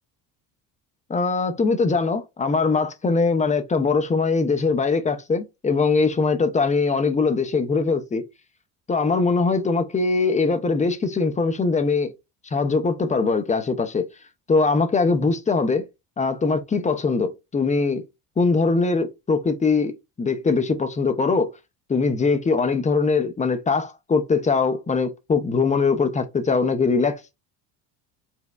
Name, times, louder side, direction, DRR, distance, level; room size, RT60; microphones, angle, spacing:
voice 1, 1.1-8.2 8.9-12.1 12.5-14.1 14.5-15.8 16.2-18.0 18.4-19.9 20.2-21.5 21.9-27.3, left 4 dB, 15° left, 0.4 m, -21 dB
4.2 x 2.1 x 2.2 m
supercardioid pair, 75°, 49 cm